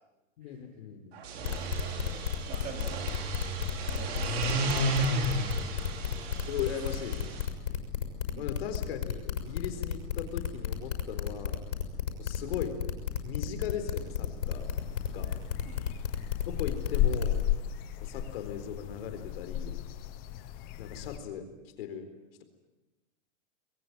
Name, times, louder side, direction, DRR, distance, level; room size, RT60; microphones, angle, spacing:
voice 1, 0.4-1.2 4.4-5.0 6.5-7.4 8.4-11.6 12.1-12.8 13.2-14.7 15.1-15.3 16.5-17.4 18.0-19.9 20.8-21.5 21.8-22.1, left 8 dB, 50° left, 7 dB, 4.1 m, -38 dB
sound 1, 1.2-7.4, right 2 dB, 55° right, 4.7 m, -33 dB
sound 2, 1.4-17.4, left 9 dB, 80° left, 6.3 m, -32 dB
voice 2, 1.8-3.4 3.9-5.3 8.3-8.5 15.6-15.9, right 4 dB, 20° right, 3 dB, 3.6 m, -46 dB
sound 3, 13.9-21.2, left 11 dB, 25° left, 1.2 m, -34 dB
26.0 x 22.0 x 9.5 m, 1.0 s
supercardioid pair, 175°, 38 cm